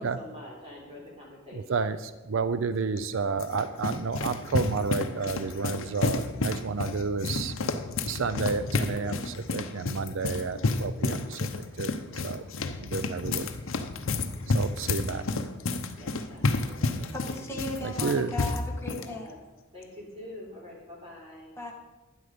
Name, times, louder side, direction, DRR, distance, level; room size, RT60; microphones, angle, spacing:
voice 1, 0.0-1.6 12.6-13.0 14.2-15.5 16.0-17.4 19.0-19.4 19.7-21.5, left 1 dB, 25° right, -4 dB, 3.8 m, -46 dB
voice 2, 1.5-7.5 8.1-11.5 11.8-11.9 12.2-12.4 12.8-13.5 14.5-15.2 17.8-18.3, right 4 dB, 60° right, 12 dB, 0.5 m, -31 dB
sound 1, 3.0-19.1, left 3 dB, 65° left, 0.8 m, -30 dB
voice 3, 17.1-19.3 21.6-21.7, left 2 dB, 10° left, -1 dB, 1.6 m, -36 dB
12.0 x 9.8 x 5.1 m, 1.1 s
head